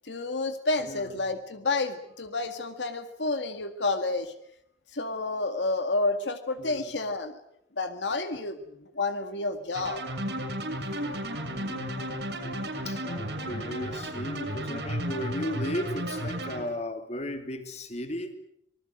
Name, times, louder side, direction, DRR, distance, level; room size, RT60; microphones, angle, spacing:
voice 1, 0.0-4.3 4.9-7.4 7.8-10.0, left 3 dB, 85° left, 8 dB, 2.0 m, -30 dB
voice 2, 0.8-1.2 6.6-6.9 11.4-18.3, left 1 dB, 40° left, 7 dB, 2.8 m, -36 dB
sound 1, 9.7-16.6, right 1 dB, 70° right, 6.5 m, -33 dB
26.5 x 20.0 x 7.9 m, 0.73 s
head